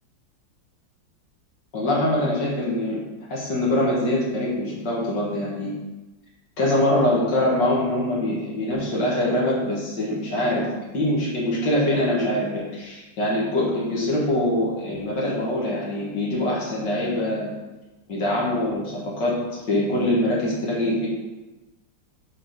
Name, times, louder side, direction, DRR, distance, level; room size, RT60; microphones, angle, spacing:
voice 1, 1.7-3.0 3.3-5.8 6.6-10.7 10.9-17.5 18.1-21.1, left 1 dB, 65° left, -5 dB, 2.0 m, -23 dB
6.0 x 3.9 x 5.7 m, 1.1 s
omnidirectional pair, 2.0 m